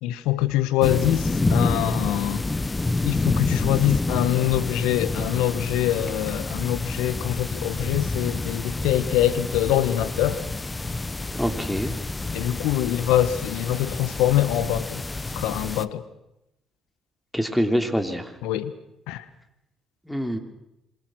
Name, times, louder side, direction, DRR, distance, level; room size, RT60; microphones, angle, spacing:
voice 1, 0.0-2.5 3.0-10.4 12.3-15.0 15.3-16.0 18.4-18.7 19.1-19.2, left 12 dB, 80° left, 14 dB, 1.3 m, -24 dB
sound 1, 0.8-15.8, left 2 dB, 20° left, 1.1 m, -28 dB
voice 2, 11.4-11.9 17.3-18.3 20.1-20.4, equal, 5° left, 6 dB, 3.2 m, -25 dB
27.0 x 22.0 x 6.4 m, 0.87 s
supercardioid pair, 65°, 0 cm